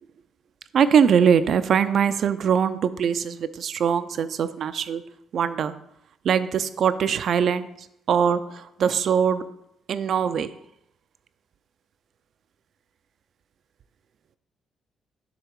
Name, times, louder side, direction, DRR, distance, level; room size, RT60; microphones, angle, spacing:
voice 1, 0.7-5.0 5.3-5.7 6.2-7.7 8.1-9.4 9.9-10.5, right 7 dB, 60° right, 13 dB, 0.4 m, -22 dB
6.6 x 3.5 x 4.6 m, 0.78 s
cardioid pair, 90°, 0 cm